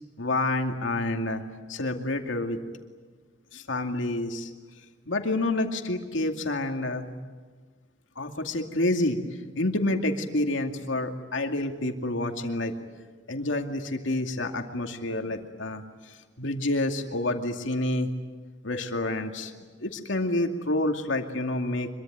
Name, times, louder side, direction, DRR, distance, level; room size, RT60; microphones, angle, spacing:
voice 1, 0.2-1.4 1.7-2.6 3.5-4.5 5.1-7.1 8.2-9.2 9.6-12.7 13.3-18.1 18.6-19.5 19.8-21.9, left 2 dB, 90° left, 4 dB, 2.4 m, -28 dB
25.5 x 23.0 x 9.4 m, 1.4 s
head